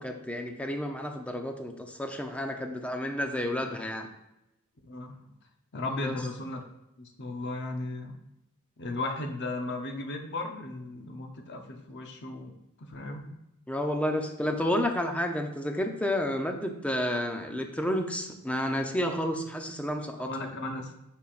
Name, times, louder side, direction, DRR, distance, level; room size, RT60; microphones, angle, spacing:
voice 1, 0.0-4.1 5.9-6.1 13.7-20.3, left 1 dB, 5° left, 4 dB, 0.6 m, -31 dB
voice 2, 4.9-5.2 5.7-6.6 7.0-8.2 8.8-12.5 12.8-13.4 20.2-20.9, left 2 dB, 55° left, 4 dB, 0.8 m, -36 dB
8.7 x 5.5 x 2.5 m, 0.90 s
head